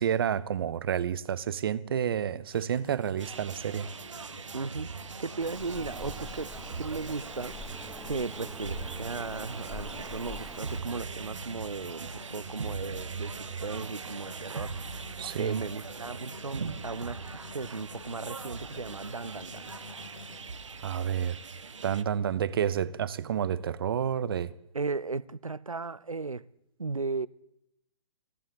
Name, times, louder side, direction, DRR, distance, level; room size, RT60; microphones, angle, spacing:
voice 1, 0.0-3.9 15.2-15.6 20.8-21.4 21.8-24.5, right 9 dB, 45° right, 0.6 m, -29 dB
sound 1, 2.5-20.8, left 4 dB, 70° left, 2.2 m, -50 dB
sound 2, 3.2-22.0, right 5 dB, 65° right, 0.9 m, -40 dB
voice 2, 4.5-6.5 6.8-17.2 17.5-19.7 24.7-26.5 26.8-27.3, right 4 dB, 90° right, 0.5 m, -36 dB
Bird vocalization bird call bird song, 5.4-10.8, left 2 dB, ahead, 0.5 m, -45 dB
15.0 x 10.5 x 8.5 m
figure-of-eight pair, 130°, 17 cm